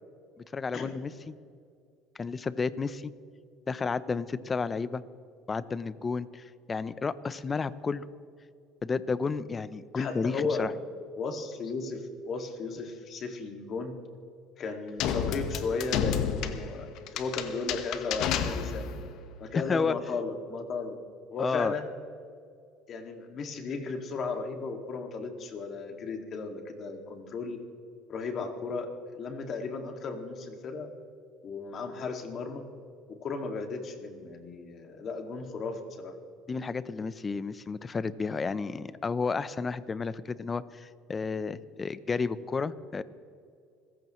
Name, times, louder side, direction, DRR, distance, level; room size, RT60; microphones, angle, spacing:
voice 1, 0.5-1.3 2.2-3.1 3.7-5.0 5.5-8.0 8.8-10.7 19.5-19.9 21.4-21.7 36.5-43.0, left 4 dB, 25° left, 16 dB, 0.7 m, -31 dB
voice 2, 9.9-10.8 11.2-14.0 14.6-18.9 19.4-21.0 21.3-21.9 22.9-27.6 28.1-30.9 31.4-32.7 33.1-36.2, left 4 dB, 45° left, 4 dB, 2.2 m, -35 dB
sound 1, 15.0-19.1, left 8 dB, 65° left, 1.2 m, -31 dB
26.0 x 15.0 x 3.2 m, 2.4 s
supercardioid pair, 105°, 0 cm